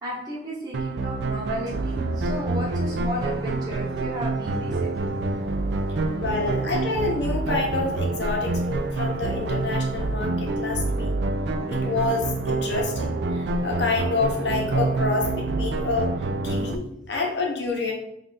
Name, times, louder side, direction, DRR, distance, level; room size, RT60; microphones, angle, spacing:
voice 1, 0.0-5.2, equal, 20° right, -7 dB, 1.0 m, -34 dB
sound 1, 0.7-16.8, right 3 dB, 65° right, 0.3 m, -27 dB
Child speech kid speaking, 4.6-10.2, equal, 45° left, 1.0 m, -43 dB
voice 2, 6.2-11.1 11.7-16.2 16.4-17.9, left 4 dB, 70° left, 0 dB, 0.9 m, -28 dB
3.6 x 2.5 x 4.0 m, 0.74 s
head